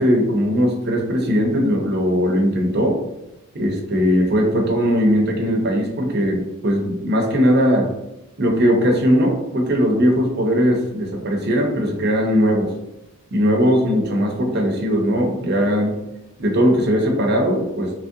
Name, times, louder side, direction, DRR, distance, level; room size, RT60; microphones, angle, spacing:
voice 1, 0.0-3.0 3.5-7.9 8.4-12.7 13.3-16.0 16.4-17.9, equal, 50° right, 1 dB, 0.6 m, -19 dB
3.0 x 2.7 x 2.5 m, 0.95 s
head